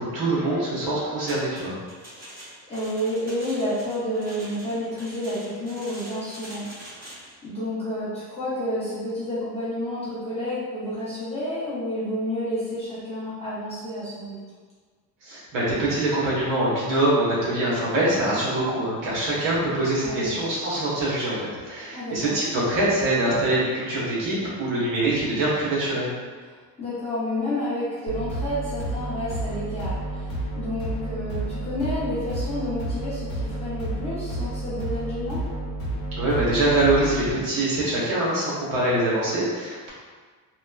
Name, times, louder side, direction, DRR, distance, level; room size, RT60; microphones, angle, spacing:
voice 1, 0.0-1.7 15.2-21.3 21.6-26.1 36.2-39.9, right 1 dB, 55° right, -7 dB, 1.0 m, -24 dB
sound 1, 1.3-7.3, right 1 dB, 25° right, 0.9 m, -44 dB
voice 2, 2.1-7.1 7.4-14.4 20.0-20.3 21.9-22.3 26.8-35.5, left 1 dB, 15° left, -11 dB, 0.6 m, -30 dB
sound 2, 28.1-37.3, right 1 dB, 55° left, 0.9 m, -31 dB
2.9 x 2.2 x 2.3 m, 1.5 s
cardioid pair, 165°, 39 cm